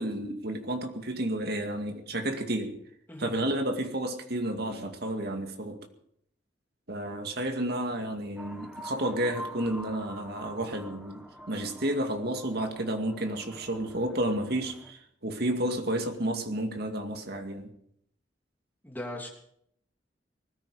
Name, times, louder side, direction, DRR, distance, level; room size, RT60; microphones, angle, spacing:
voice 1, 0.0-2.8 3.2-5.8 6.9-17.7, right 1 dB, 60° right, 5 dB, 2.2 m, -31 dB
sound 1, 8.4-14.9, right 1 dB, 5° right, 1.7 m, -46 dB
voice 2, 18.8-19.3, left 1 dB, 10° left, 1 dB, 3.0 m, -38 dB
19.5 x 14.0 x 5.0 m, 0.71 s
head